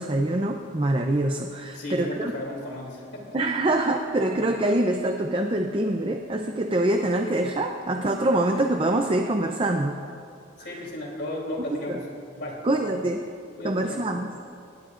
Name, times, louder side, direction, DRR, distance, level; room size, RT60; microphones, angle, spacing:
voice 1, 0.0-2.3 3.3-10.0 11.7-12.0 12.6-13.2 13.6-14.3, right 1 dB, 25° right, 4 dB, 0.6 m, -25 dB
voice 2, 1.7-3.4 10.6-12.1 12.3-12.6 13.6-14.0, left 1 dB, 60° left, -2 dB, 3.2 m, -34 dB
20.5 x 17.0 x 2.5 m, 2.4 s
head